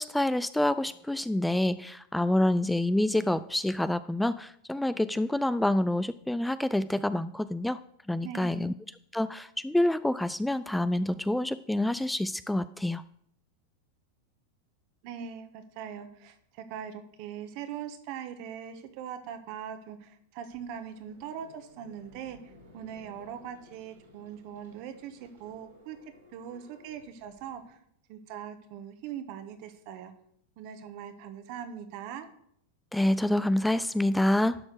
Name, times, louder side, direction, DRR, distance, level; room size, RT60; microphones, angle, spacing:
voice 1, 0.0-7.8 8.1-8.7 9.1-13.0 32.9-34.6, left 1 dB, 5° left, 15 dB, 0.3 m, -27 dB
voice 2, 8.2-8.7 15.0-26.0 26.3-27.8 28.1-30.1 30.6-32.3, right 8 dB, 55° right, 9 dB, 1.4 m, -41 dB
sound 1, 20.5-27.7, equal, 90° right, 3.6 m, -57 dB
12.0 x 4.3 x 6.4 m, 0.68 s
hypercardioid pair, 100°, 0 cm